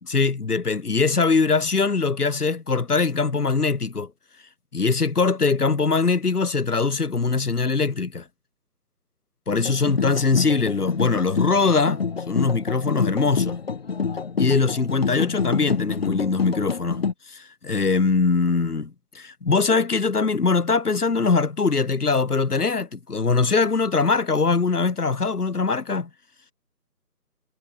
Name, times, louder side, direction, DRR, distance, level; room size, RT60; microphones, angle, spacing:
voice 1, 0.1-4.1 4.7-8.2 9.5-13.6 14.4-26.1, left 4 dB, 65° left, 3.5 m, -22 dB
sound 1, 9.5-17.1, left 5 dB, 35° left, 3.1 m, -27 dB
figure-of-eight pair, 170°, 49 cm